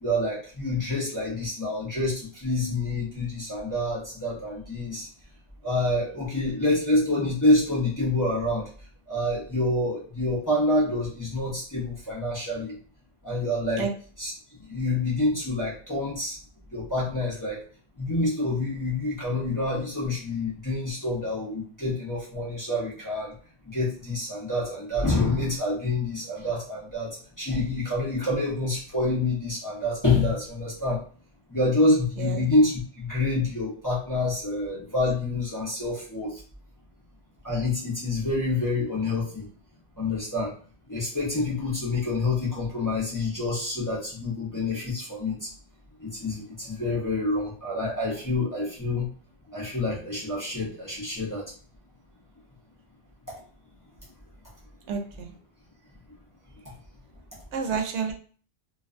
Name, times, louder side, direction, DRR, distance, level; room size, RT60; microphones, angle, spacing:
voice 1, 0.0-5.1 5.6-8.7 9.1-12.8 13.2-13.9 14.2-14.3 14.7-16.4 16.7-17.6 18.0-23.3 23.7-31.0 31.5-36.3 37.4-39.5 40.0-40.5 40.9-45.5 46.0-49.1 49.5-51.4, left 2 dB, 20° left, -7 dB, 0.6 m, -27 dB
voice 2, 54.9-55.3 57.5-58.1, right 6 dB, 80° right, 3 dB, 0.9 m, -29 dB
2.4 x 2.2 x 2.4 m, 0.42 s
omnidirectional pair, 1.2 m